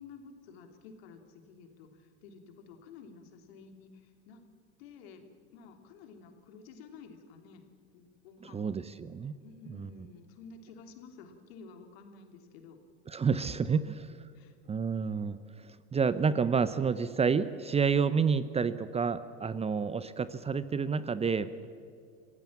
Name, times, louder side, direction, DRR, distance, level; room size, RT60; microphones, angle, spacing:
voice 1, 0.0-4.4 4.8-7.7 7.9-8.7 9.4-12.8 13.8-13.9 14.3-14.6, left 5 dB, 65° left, 5 dB, 3.1 m, -52 dB
voice 2, 8.4-9.3 9.7-9.9 13.1-14.1 14.7-21.5, right 5 dB, 20° right, 15 dB, 0.8 m, -29 dB
26.5 x 16.0 x 7.3 m, 2.4 s
hypercardioid pair, 85°, 34 cm